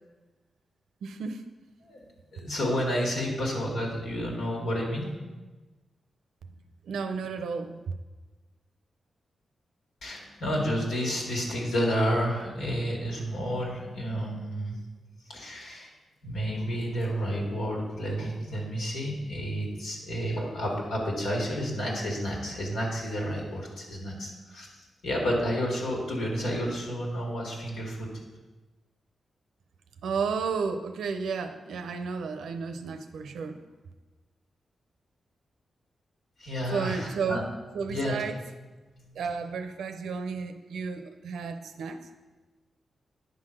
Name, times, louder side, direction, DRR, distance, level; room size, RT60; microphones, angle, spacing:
voice 1, 1.0-1.4 6.9-7.9 30.0-33.6 36.7-37.4 37.7-38.4 39.1-42.0, right 5 dB, 90° right, 8 dB, 0.6 m, -32 dB
voice 2, 2.3-5.1 10.0-14.8 15.3-15.9 16.2-24.7 25.0-28.1 36.4-37.4 37.9-38.2, equal, 85° left, -1 dB, 2.1 m, -30 dB
9.4 x 3.9 x 6.3 m, 1.2 s
cardioid pair, 75°, 0 cm